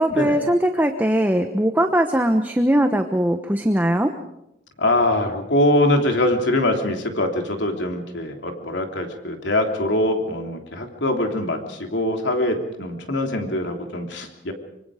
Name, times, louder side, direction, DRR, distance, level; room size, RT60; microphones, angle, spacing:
voice 1, 0.0-4.1, right 1 dB, 10° right, 6 dB, 1.0 m, -20 dB
voice 2, 4.8-14.5, left 1 dB, 80° left, 3 dB, 3.2 m, -23 dB
25.0 x 24.5 x 5.0 m, 0.84 s
head